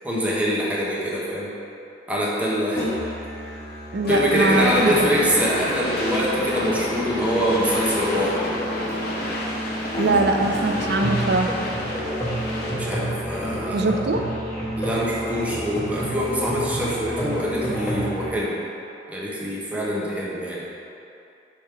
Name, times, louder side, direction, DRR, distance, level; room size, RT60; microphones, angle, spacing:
voice 1, 0.0-1.5 2.1-2.9 4.1-8.4 12.7-13.9 14.8-18.6 19.1-20.7, equal, 10° right, -6 dB, 0.9 m, -24 dB
Musical instrument, 2.8-18.3, equal, 15° left, 1.3 m, -30 dB
voice 2, 3.9-4.9 10.0-11.5 13.7-14.2, right 2 dB, 60° right, 4 dB, 0.5 m, -22 dB
sound 1, 4.1-13.0, left 1 dB, 60° left, 1.0 m, -30 dB
6.3 x 3.6 x 4.5 m, 2.7 s
head